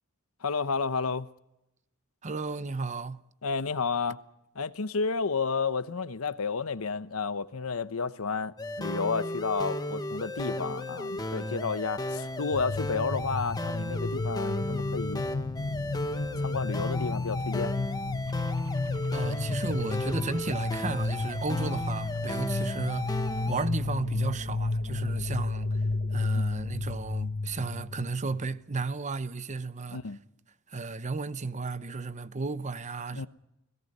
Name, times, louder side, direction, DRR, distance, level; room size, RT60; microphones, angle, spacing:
voice 1, 0.4-1.3 3.4-4.2 4.5-15.3 16.4-17.7 26.3-26.5 29.9-30.2 33.1-33.3, left 4 dB, 80° left, 0.9 m, -31 dB
voice 2, 2.2-3.2 19.1-23.2 23.5-25.8 26.1-30.0 30.7-33.3, right 3 dB, 35° right, 0.8 m, -34 dB
sound 1, 8.6-23.7, left 1 dB, 20° left, 1.2 m, -35 dB
sound 2, 12.5-28.4, left 3 dB, 45° left, 0.7 m, -32 dB
sound 3, 18.3-26.3, right 3 dB, 80° right, 2.0 m, -53 dB
29.5 x 18.0 x 5.5 m
head